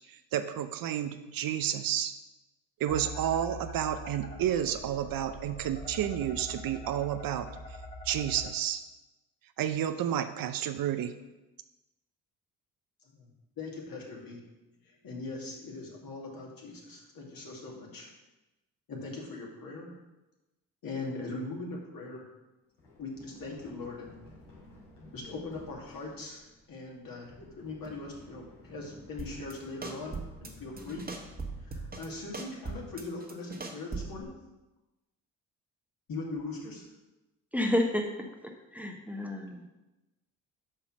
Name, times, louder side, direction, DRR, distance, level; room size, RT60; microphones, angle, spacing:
voice 1, 0.1-2.1 2.8-7.5 8.0-8.8 9.6-11.1, right 10 dB, 55° right, 9 dB, 0.6 m, -31 dB
sound 1, 2.9-8.5, left 1 dB, 25° left, 2.4 m, -43 dB
voice 2, 13.6-14.4 14.8-18.1 18.9-19.9 20.8-22.3 23.0-24.1 25.1-31.1 31.6-34.3 36.1-36.8, left 3 dB, 55° left, -2 dB, 2.4 m, -40 dB
Run, 22.8-32.5, left 1 dB, 75° left, 2.5 m, -54 dB
sound 2, 29.2-29.5 29.8-30.5 30.8-32.1 32.3-34.2, right 3 dB, 20° right, 1.4 m, -39 dB
voice 3, 37.5-38.1 38.4-39.7, left 1 dB, 5° right, 3 dB, 1.0 m, -30 dB
5.6 x 5.4 x 6.1 m, 1.0 s
hypercardioid pair, 50°, 42 cm